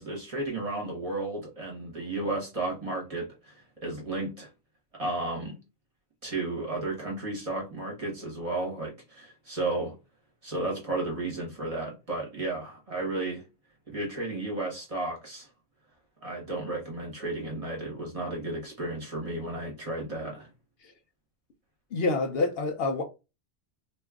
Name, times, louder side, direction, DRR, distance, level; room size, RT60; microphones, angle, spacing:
voice 1, 0.0-4.5 4.9-5.6 6.2-9.9 10.4-13.4 13.9-15.5 16.2-20.5, right 2 dB, 35° right, 1.0 m, -33 dB
voice 2, 21.9-23.0, left 3 dB, 65° left, 0.7 m, -27 dB
2.5 x 2.3 x 3.5 m
omnidirectional pair, 1.1 m